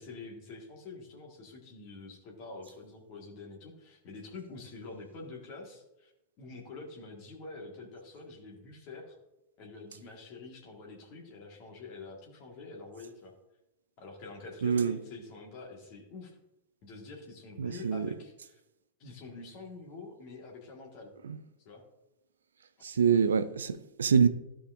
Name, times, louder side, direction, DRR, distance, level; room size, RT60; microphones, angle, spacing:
voice 1, 0.0-6.1 6.4-9.2 9.6-13.3 14.0-16.4 16.8-18.6 19.0-21.1 21.7-21.8 22.8-23.3, left 3 dB, 45° left, 1.7 m, -46 dB
voice 2, 14.6-15.0 17.6-18.1 22.8-24.3, right 6 dB, 70° right, 0.4 m, -25 dB
14.5 x 5.0 x 2.6 m
figure-of-eight pair, 90°, 0 cm